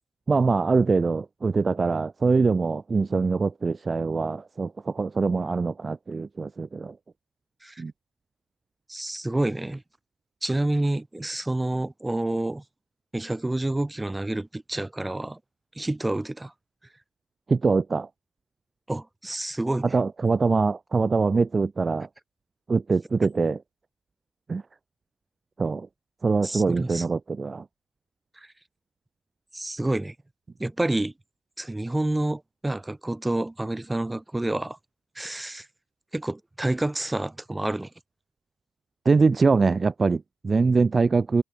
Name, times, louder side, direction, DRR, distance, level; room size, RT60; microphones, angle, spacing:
voice 1, 0.3-7.0 7.8-7.9 17.5-18.1 19.8-22.1 22.7-23.6 24.5-24.6 25.6-25.9 26.2-27.6 39.1-41.4, right 4 dB, 30° right, 2.0 m, -23 dB
voice 2, 8.9-9.8 10.4-12.6 13.1-15.4 15.8-16.5 18.9-19.9 26.4-27.0 28.4-28.5 29.5-30.1 30.6-31.1 31.6-34.8 35.2-35.7 36.1-37.9, right 2 dB, 10° right, 5.5 m, -28 dB
cardioid pair, 90°, 0 cm